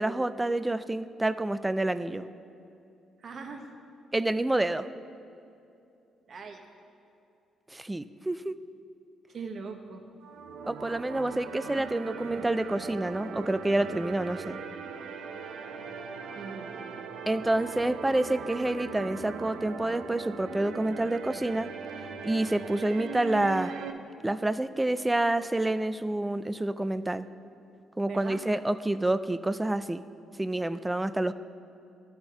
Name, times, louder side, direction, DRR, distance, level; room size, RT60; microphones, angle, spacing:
voice 1, 0.0-2.3 4.1-4.9 7.7-8.6 10.6-14.6 17.3-21.7 22.2-23.7 24.2-27.3 28.0-30.0 30.4-31.3, right 1 dB, 10° right, 14 dB, 0.3 m, -28 dB
voice 2, 3.2-3.7 6.3-6.6 9.3-10.0 16.3-16.7 28.1-28.4, right 4 dB, 50° right, 3 dB, 1.0 m, -40 dB
sound 1, 10.2-23.9, right 5 dB, 85° right, 0.6 m, -40 dB
13.0 x 4.4 x 5.7 m, 2.7 s
cardioid pair, 90°, 0 cm